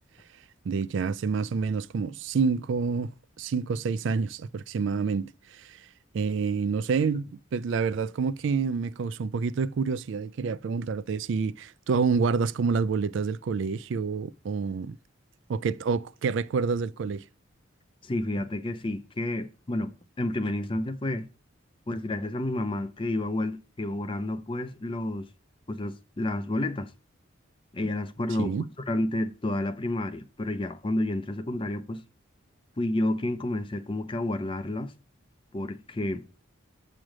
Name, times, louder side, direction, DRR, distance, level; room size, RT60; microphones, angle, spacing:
voice 1, 0.7-3.1 3.4-5.8 6.1-15.0 15.5-17.2 28.4-28.6, right 5 dB, 65° right, 0.4 m, -28 dB
voice 2, 18.0-21.3 21.9-25.3 25.7-26.9 27.7-32.0 32.8-34.9 35.5-36.3, left 1 dB, 25° left, 0.5 m, -30 dB
7.4 x 3.2 x 4.9 m
head